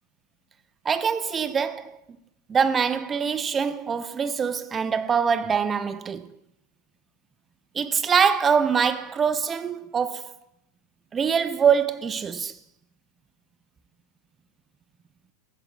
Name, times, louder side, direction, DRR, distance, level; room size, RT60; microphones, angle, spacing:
voice 1, 0.9-2.0 2.5-6.4 7.7-10.3 11.1-12.5, right 6 dB, 20° right, 0.4 m, -24 dB
14.0 x 8.4 x 2.3 m
figure-of-eight pair, 90°, 0 cm